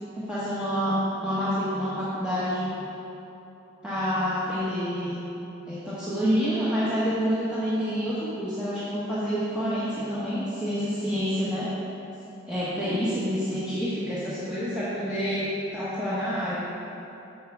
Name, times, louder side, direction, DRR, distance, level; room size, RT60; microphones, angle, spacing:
voice 1, 0.1-1.0 1.2-2.7 3.8-5.2 5.7-11.7 12.5-16.6, equal, 5° right, -11 dB, 1.0 m, -28 dB
7.3 x 7.0 x 4.5 m, 3.0 s
head